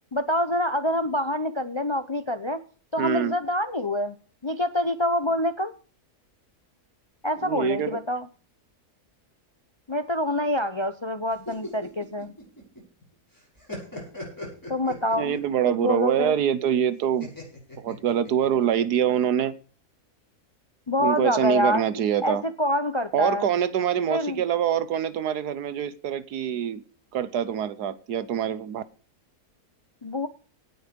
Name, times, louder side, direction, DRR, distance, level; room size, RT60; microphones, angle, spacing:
voice 1, 0.1-2.6 2.9-4.2 4.4-5.7 7.2-8.3 9.9-12.3 14.7-15.4 15.6-16.3 20.9-21.9 22.2-23.5 24.1-24.4 30.0-30.3, left 1 dB, 40° left, 10 dB, 0.4 m, -26 dB
voice 2, 3.0-3.3 7.4-8.0 15.2-17.3 17.8-19.5 21.0-22.4 23.1-26.8 27.1-28.8, right 9 dB, 85° right, 15 dB, 1.5 m, -25 dB
sound 1, 11.3-13.0 13.3-15.5 17.2-18.6, left 1 dB, 10° left, 6.5 m, -39 dB
18.0 x 6.3 x 5.3 m, 0.40 s
omnidirectional pair, 1.7 m